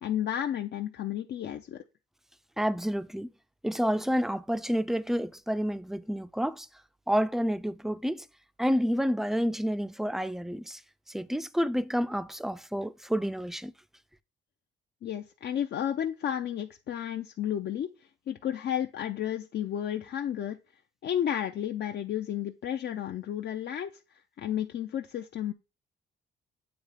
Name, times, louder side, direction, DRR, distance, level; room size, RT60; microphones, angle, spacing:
voice 1, 0.0-1.8 15.0-17.9 18.3-20.6 21.0-25.5, left 10 dB, 60° left, 0.6 m, -32 dB
voice 2, 2.6-3.3 3.6-6.7 7.1-8.3 8.6-10.8 11.1-13.7, equal, ahead, 0.4 m, -29 dB
8.1 x 3.0 x 4.9 m
cardioid pair, 90°, 20 cm